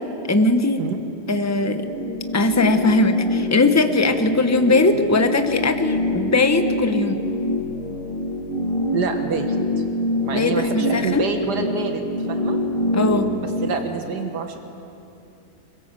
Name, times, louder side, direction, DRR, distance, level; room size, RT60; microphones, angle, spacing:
voice 1, 0.3-0.8 1.3-1.9 2.3-7.2 10.3-11.3 12.9-13.3, left 2 dB, 10° left, 7 dB, 0.9 m, -19 dB
sound 1, 1.3-13.7, left 1 dB, 35° left, 2.1 m, -25 dB
voice 2, 8.9-9.6 10.2-12.6 13.4-14.6, right 5 dB, 90° right, 5 dB, 2.1 m, -27 dB
22.5 x 21.5 x 7.7 m, 2.7 s
omnidirectional pair, 1.7 m